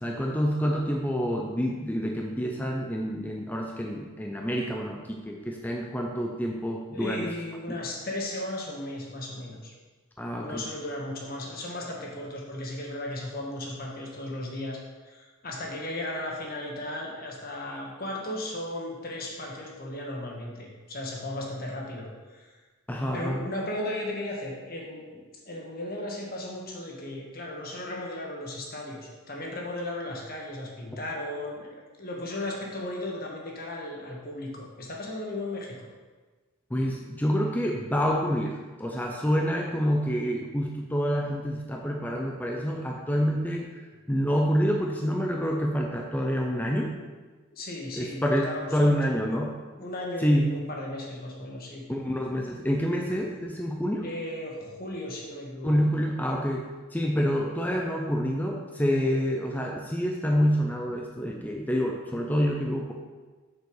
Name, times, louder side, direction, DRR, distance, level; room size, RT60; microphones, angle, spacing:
voice 1, 0.0-7.3 7.7-7.8 10.2-10.6 22.9-23.4 36.7-43.8 44.1-46.9 48.0-49.5 50.2-50.5 51.9-54.1 55.6-56.6 56.9-62.9, equal, 10° left, 0 dB, 0.5 m, -27 dB
voice 2, 6.9-9.7 10.4-14.8 15.0-22.6 23.1-25.1 25.3-35.9 47.5-49.1 49.7-51.8 54.0-55.7, left 1 dB, 45° left, -1 dB, 1.5 m, -36 dB
6.8 x 6.7 x 4.7 m, 1.3 s
head